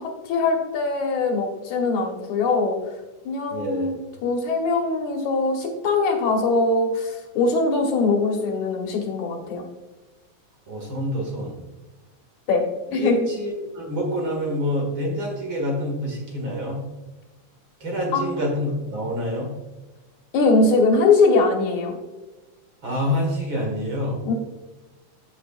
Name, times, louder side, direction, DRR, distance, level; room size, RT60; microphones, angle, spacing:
voice 1, 0.0-2.8 3.3-4.0 4.2-9.6 12.5-12.7 12.9-13.2 18.1-18.3 20.3-22.0 24.3-24.4, left 3 dB, 75° left, 2 dB, 2.6 m, -21 dB
voice 2, 3.5-3.9 10.7-11.6 12.9-16.8 17.8-19.5 22.8-24.2, left 1 dB, 45° right, -1 dB, 2.5 m, -27 dB
14.0 x 6.3 x 2.5 m, 1.1 s
omnidirectional pair, 3.5 m